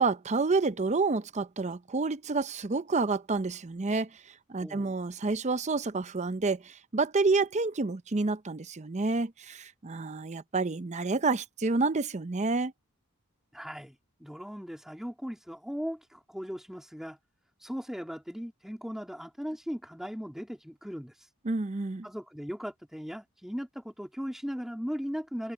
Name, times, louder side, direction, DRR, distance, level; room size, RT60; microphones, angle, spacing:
voice 1, 0.0-4.2 4.5-12.7 21.4-22.1, right 3 dB, 30° right, 0.6 m, -29 dB
voice 2, 4.6-4.9 13.5-17.2 17.6-21.3 22.0-25.5, equal, ahead, 3.2 m, -38 dB
head